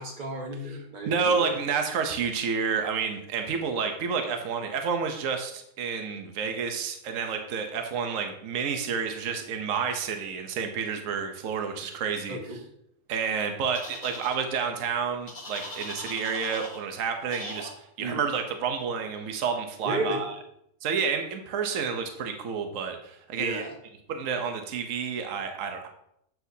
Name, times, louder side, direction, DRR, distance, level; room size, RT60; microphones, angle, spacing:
voice 1, 0.0-1.6 12.3-12.6 18.0-18.3 19.8-20.3 23.4-23.8, right 1 dB, 35° right, 1 dB, 1.1 m, -33 dB
voice 2, 1.0-12.4 13.1-17.7 18.0-20.3 20.8-23.6 24.1-25.9, right 6 dB, 70° right, 5 dB, 1.1 m, -30 dB
sound 1, 13.7-14.4 15.3-16.8 17.3-17.7, left 1 dB, 35° left, 1.5 m, -40 dB
7.9 x 6.1 x 2.7 m, 0.74 s
omnidirectional pair, 1.5 m